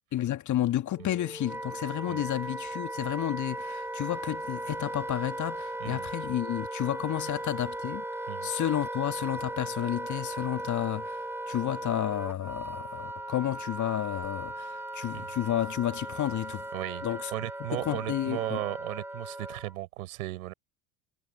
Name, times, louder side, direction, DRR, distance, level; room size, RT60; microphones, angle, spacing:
voice 1, 0.1-8.0 8.4-16.7 17.0-17.3 17.7-18.6, left 12 dB, 40° left, 2.2 m, -31 dB
Wind instrument woodwind instrument, 0.9-19.8, right 1 dB, 5° right, 2.7 m, -37 dB
voice 2, 16.7-17.0 17.3-20.5, right 18 dB, 70° right, 6.9 m, -36 dB
figure-of-eight pair, 70°, 44 cm